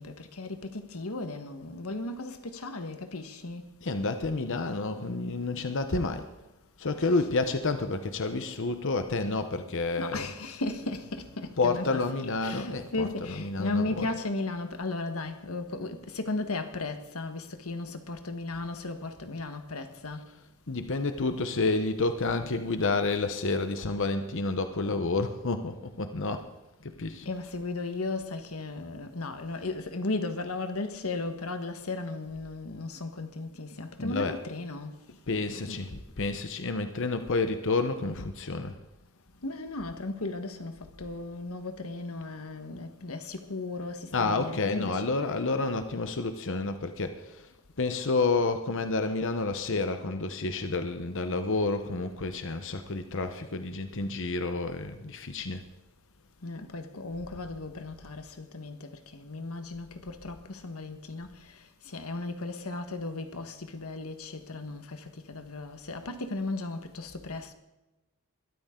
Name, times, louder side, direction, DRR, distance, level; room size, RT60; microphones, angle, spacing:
voice 1, 0.0-3.7 10.0-12.0 12.4-20.3 27.2-35.0 39.4-45.0 56.4-61.6 61.8-67.5, left 2 dB, 80° left, 1.5 m, -36 dB
voice 2, 3.8-6.2 6.8-10.3 11.6-14.1 20.7-26.5 26.8-27.3 34.0-34.4 35.3-38.7 44.1-47.5 47.8-55.6, left 3 dB, 60° left, 0.9 m, -29 dB
21.5 x 13.5 x 3.8 m
head